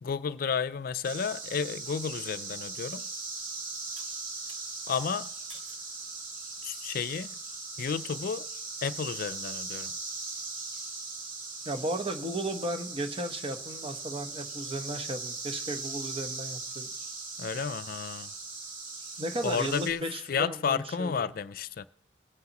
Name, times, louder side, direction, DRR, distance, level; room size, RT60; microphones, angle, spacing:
voice 1, 0.0-3.0 4.9-5.3 6.6-7.3 7.8-8.5 8.8-9.9 17.4-18.3 19.4-21.8, left 6 dB, 55° left, 0.4 m, -32 dB
sound 1, 1.0-19.9, right 3 dB, 50° right, 2.0 m, -39 dB
sound 2, 4.0-4.6 5.5-5.9 6.5-6.9, right 4 dB, 90° right, 1.7 m, -51 dB
voice 2, 11.6-16.9 19.2-21.3, right 1 dB, 30° right, 1.0 m, -35 dB
20.5 x 9.5 x 3.0 m
head